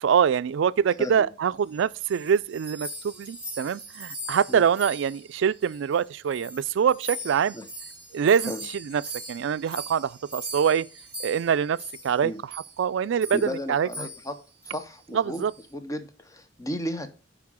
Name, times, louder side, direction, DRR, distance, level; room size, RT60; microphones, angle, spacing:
voice 1, 0.0-7.5 8.1-9.0 9.3-10.9 11.2-11.8 12.0-12.3 12.8-14.1 15.1-15.5, right 7 dB, 70° right, 0.3 m, -24 dB
sound 1, 1.7-6.0 6.3-12.2 12.5-12.7 13.2-13.5 13.9-14.3 14.6-14.8 15.3-15.6, equal, 5° right, 2.0 m, -40 dB
voice 2, 13.3-14.4 14.6-15.4 15.7-17.1, equal, 15° left, 0.8 m, -34 dB
5.8 x 4.8 x 6.2 m
head